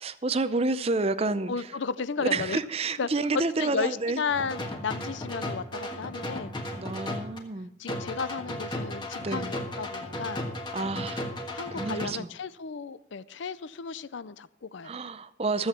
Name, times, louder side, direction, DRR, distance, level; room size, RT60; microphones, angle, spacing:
voice 1, 0.0-1.7 2.2-4.2 6.8-7.7 9.2-9.5 10.7-11.3 11.7-12.3 14.8-15.7, right 3 dB, 30° right, 13 dB, 0.5 m, -29 dB
voice 2, 1.5-2.6 3.0-6.5 7.8-10.5 11.5-15.1, left 5 dB, 70° left, 17 dB, 0.5 m, -34 dB
sound 1, 4.3-7.4 7.9-12.1, left 1 dB, 25° left, 1.5 m, -35 dB
14.5 x 8.0 x 5.9 m, 0.76 s
head